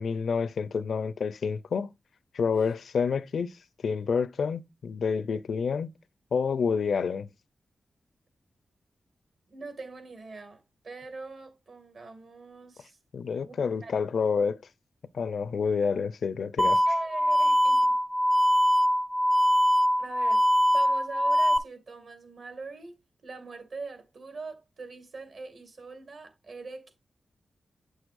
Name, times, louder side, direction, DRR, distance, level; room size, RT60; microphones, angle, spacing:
voice 1, 0.0-1.9 2.3-3.5 3.8-5.9 6.3-7.3 13.1-14.6 15.1-16.8, left 5 dB, 75° left, 0.5 m, -28 dB
voice 2, 9.5-13.0 13.4-13.5 13.8-14.0 16.9-17.9 20.0-20.5 20.7-27.0, right 3 dB, 65° right, 2.1 m, -42 dB
sound 1, 16.6-21.6, equal, ahead, 0.5 m, -23 dB
8.3 x 6.3 x 2.5 m
wide cardioid pair, 120°, 0 cm